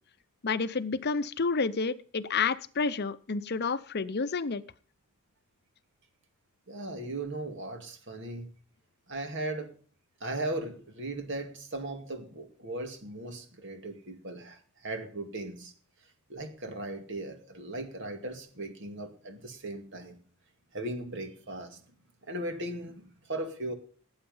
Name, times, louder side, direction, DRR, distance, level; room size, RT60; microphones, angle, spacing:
voice 1, 0.4-4.6, left 4 dB, 45° left, 15 dB, 0.7 m, -30 dB
voice 2, 6.7-8.5 9.1-9.7 10.2-15.7 16.3-20.2 20.7-21.9 22.2-23.7, right 1 dB, 55° right, 6 dB, 2.3 m, -37 dB
17.5 x 8.8 x 5.5 m, 0.43 s
head